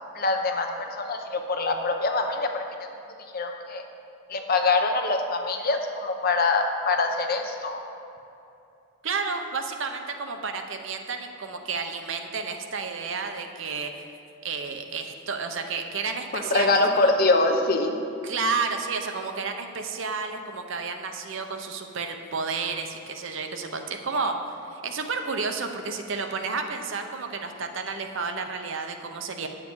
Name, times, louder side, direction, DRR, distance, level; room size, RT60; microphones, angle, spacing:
voice 1, 0.1-2.6 3.3-3.8 4.3-7.8 16.3-18.0, left 3 dB, 45° left, 4 dB, 0.7 m, -24 dB
voice 2, 9.0-13.9 14.4-17.1 18.2-24.4 24.7-29.5, right 4 dB, 60° right, 5 dB, 0.7 m, -31 dB
9.3 x 7.5 x 4.7 m, 2.8 s
head